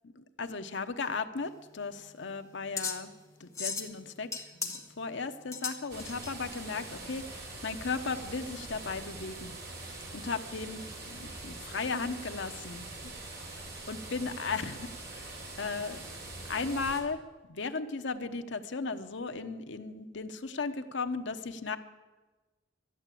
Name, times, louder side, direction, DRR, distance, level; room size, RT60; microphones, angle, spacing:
voice 1, 0.0-3.1 3.4-9.5 10.1-13.1 13.5-13.6 13.9-14.8 15.1-16.0 16.4-17.2 17.5-21.8, left 4 dB, 65° left, 7 dB, 0.9 m, -36 dB
sound 1, 1.4-6.6, left 5 dB, 15° left, 1.4 m, -39 dB
sound 2, 5.9-17.0, right 2 dB, 55° right, 3.1 m, -43 dB
13.0 x 10.5 x 8.4 m, 1.2 s
head